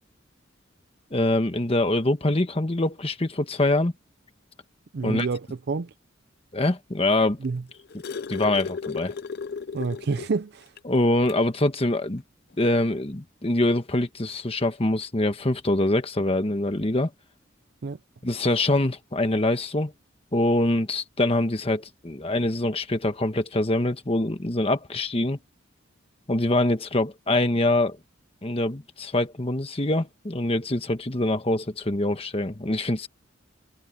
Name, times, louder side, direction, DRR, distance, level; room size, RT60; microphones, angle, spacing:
voice 1, 1.1-3.9 5.0-5.3 6.5-7.4 8.3-9.1 10.8-12.2 12.6-17.1 18.2-19.9 20.3-25.4 26.3-28.0 28.4-33.1, left 1 dB, 30° left, 1.3 m, -24 dB
voice 2, 4.9-5.9 7.4-7.6 9.7-10.7 17.8-18.0, right 4 dB, 55° right, 0.5 m, -28 dB
sound 1, 7.4-10.4 10.8-10.9 11.3-11.5 12.6-12.7, left 5 dB, 50° left, 0.5 m, -34 dB
head